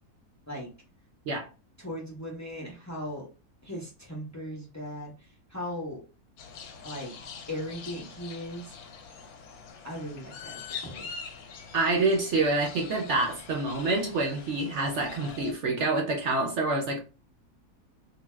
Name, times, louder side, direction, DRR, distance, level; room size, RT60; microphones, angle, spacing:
voice 1, 1.8-3.3 3.6-6.0 6.8-7.2 7.5-8.8 9.8-11.1, equal, 25° left, 0.3 m, -38 dB
sound 1, 6.4-15.5, left 6 dB, 80° left, 1.0 m, -44 dB
voice 2, 11.7-17.0, right 3 dB, 65° right, 0.8 m, -27 dB
2.6 x 2.2 x 3.1 m
omnidirectional pair, 1.6 m